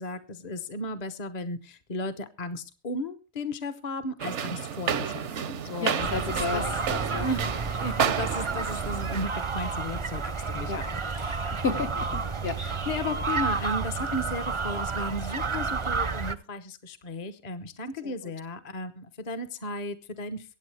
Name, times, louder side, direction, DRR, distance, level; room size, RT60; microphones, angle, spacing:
voice 1, 0.0-6.7 7.1-7.4 7.8-10.9 11.2-11.9 12.6-20.6, left 1 dB, 40° left, 11 dB, 1.0 m, -35 dB
sound 1, 4.2-9.3, right 8 dB, 75° right, 1.1 m, -31 dB
voice 2, 5.8-7.3 10.7-10.8 11.5-12.6 18.0-18.1, left 4 dB, 60° left, 5 dB, 1.3 m, -32 dB
sound 2, 6.0-16.3, right 4 dB, 30° right, 0.6 m, -31 dB
23.5 x 8.5 x 3.3 m, 0.31 s
omnidirectional pair, 1.2 m